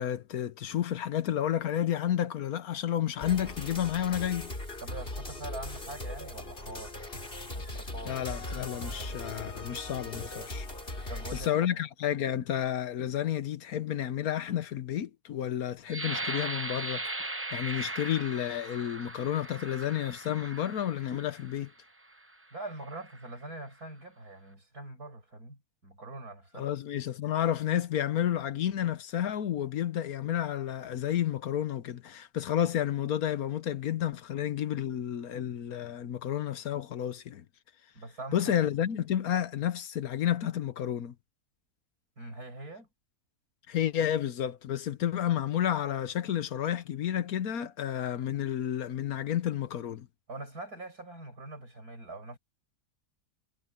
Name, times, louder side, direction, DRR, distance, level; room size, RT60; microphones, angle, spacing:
voice 1, 0.0-4.5 8.1-10.7 11.3-17.0 17.5-21.7 26.6-37.4 38.3-41.1 43.7-50.1, left 10 dB, 70° left, 1.3 m, -31 dB
sound 1, 3.2-11.5, left 2 dB, 35° left, 3.7 m, -39 dB
voice 2, 4.8-7.0 7.5-8.2 11.1-11.8 22.5-26.7 37.9-38.6 42.2-42.9 50.3-52.4, right 2 dB, 75° right, 7.8 m, -43 dB
sound 2, 15.9-21.5 22.2-22.3 22.8-23.3, right 2 dB, 10° right, 0.6 m, -38 dB
omnidirectional pair, 1.6 m